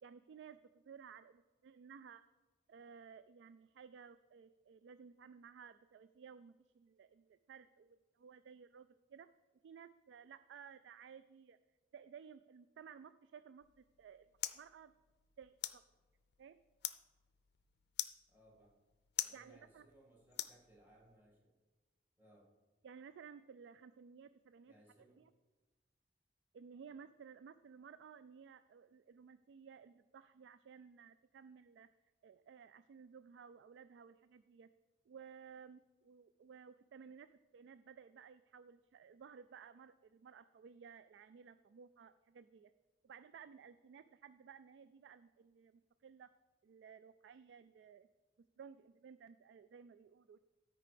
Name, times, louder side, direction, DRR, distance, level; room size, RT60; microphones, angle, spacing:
voice 1, 0.0-2.2 2.7-9.3 9.6-11.6 11.9-14.9 15.4-15.9 16.4-16.6 19.3-19.9 22.8-24.7 25.2-25.3 26.5-31.9 32.2-34.7 35.1-42.7 43.0-46.3 46.6-48.1 48.4-50.4, right 6 dB, 70° right, 13 dB, 0.3 m, -57 dB
sound 1, 13.6-21.2, left 13 dB, 60° left, 0.5 m, -47 dB
voice 2, 18.3-18.8 19.2-21.5 22.2-22.5 24.7-25.2, right 1 dB, 10° right, -3 dB, 2.2 m, -66 dB
13.0 x 4.8 x 5.1 m, 1.2 s
head